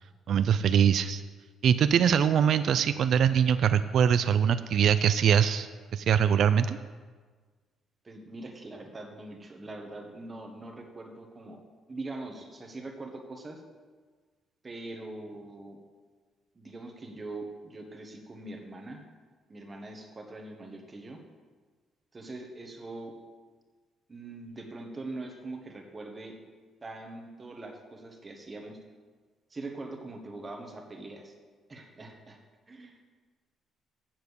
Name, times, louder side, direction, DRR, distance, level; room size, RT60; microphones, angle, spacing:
voice 1, 0.3-1.2 1.6-6.8, right 8 dB, 55° right, 12 dB, 0.3 m, -23 dB
voice 2, 8.0-11.6 11.9-13.6 14.6-15.8 16.5-19.0 19.5-21.2 22.1-23.1 24.1-26.4 26.8-28.8 29.5-31.3 31.7-32.4 32.7-33.1, right 2 dB, 20° right, 3 dB, 1.2 m, -42 dB
7.4 x 6.7 x 8.0 m, 1.5 s
cardioid pair, 155°, 0 cm